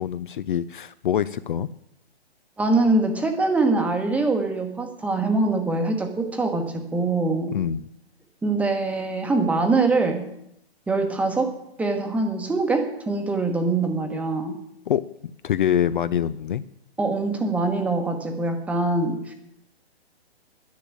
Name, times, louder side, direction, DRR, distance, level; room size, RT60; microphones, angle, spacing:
voice 1, 0.0-1.7 7.5-7.9 14.9-15.0 15.4-16.6, left 10 dB, 50° left, 15 dB, 0.5 m, -24 dB
voice 2, 2.6-7.5 8.4-10.3 10.9-14.6 17.0-19.3, right 3 dB, 5° right, 5 dB, 1.1 m, -23 dB
10.5 x 10.5 x 8.7 m, 0.76 s
hypercardioid pair, 150°, 32 cm